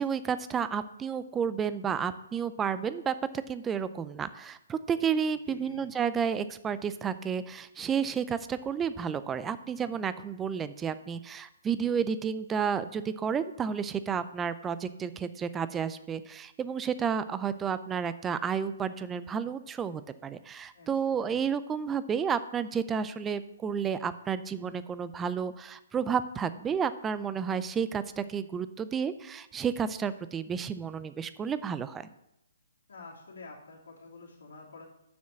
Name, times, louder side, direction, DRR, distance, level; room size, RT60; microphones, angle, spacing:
voice 1, 0.0-3.1 3.5-32.0, right 7 dB, 15° right, 13 dB, 0.5 m, -31 dB
voice 2, 5.3-5.9 20.7-21.4 32.9-34.8, left 3 dB, 70° left, -4 dB, 2.8 m, -48 dB
7.1 x 6.3 x 7.6 m, 0.84 s
hypercardioid pair, 140°, 0 cm